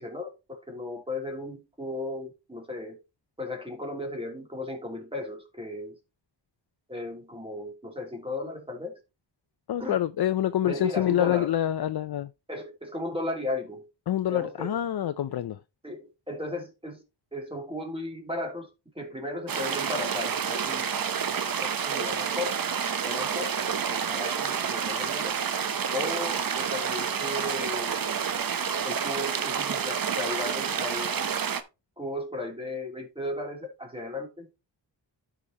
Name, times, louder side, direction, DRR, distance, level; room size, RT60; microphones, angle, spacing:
voice 1, 0.0-3.0 3.4-6.0 6.9-8.9 9.8-9.9 10.6-11.5 12.5-13.9 14.3-14.7 15.8-17.0 17.3-18.7 19.0-20.9 21.6-22.6 23.0-25.3 25.9-28.2 28.8-31.3 32.0-34.5, left 2 dB, 10° right, 2.9 m, -35 dB
voice 2, 9.7-12.3 14.1-15.6, left 11 dB, 60° left, 0.5 m, -26 dB
sound 1, 19.5-31.6, right 7 dB, 50° right, 0.9 m, -29 dB
12.5 x 5.0 x 2.9 m
cardioid pair, 80°, 44 cm